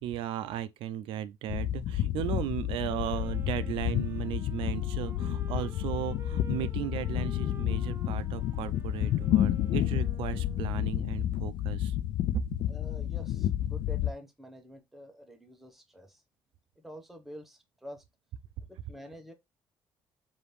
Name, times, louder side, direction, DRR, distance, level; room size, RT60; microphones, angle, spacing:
voice 1, 0.0-12.0 12.3-12.4, right 11 dB, 90° right, 0.4 m, -36 dB
sound 1, 1.5-14.1, left 12 dB, 65° left, 0.3 m, -30 dB
Wind instrument woodwind instrument, 2.7-11.0, right 5 dB, 25° right, 0.6 m, -51 dB
voice 2, 12.7-16.2 16.8-18.0 18.7-19.3, equal, 5° right, 0.8 m, -47 dB
5.0 x 2.6 x 3.1 m
cardioid pair, 135°, 9 cm